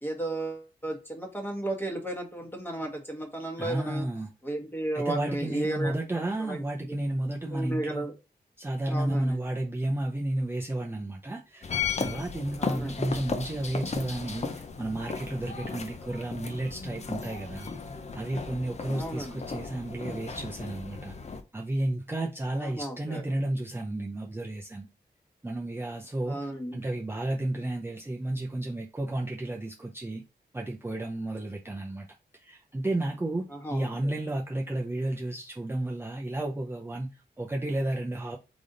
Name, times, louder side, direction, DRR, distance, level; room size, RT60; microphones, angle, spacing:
voice 1, 0.0-4.1 4.4-5.9 6.4-7.0 7.5-8.1 8.9-9.4 12.6-13.0 18.9-19.4 22.6-23.2 26.3-26.8 33.5-34.1, right 1 dB, 10° left, 1.2 m, -34 dB
voice 2, 3.6-4.3 4.9-8.1 8.6-11.7 12.0-17.7 18.1-21.1 21.5-24.9 25.4-26.5 26.7-30.2 30.5-32.1 32.3-38.4, right 1 dB, 15° right, 0.6 m, -32 dB
sound 1, 11.6-21.4, left 5 dB, 40° left, 0.6 m, -35 dB
4.0 x 3.4 x 3.8 m
wide cardioid pair, 120°, 17 cm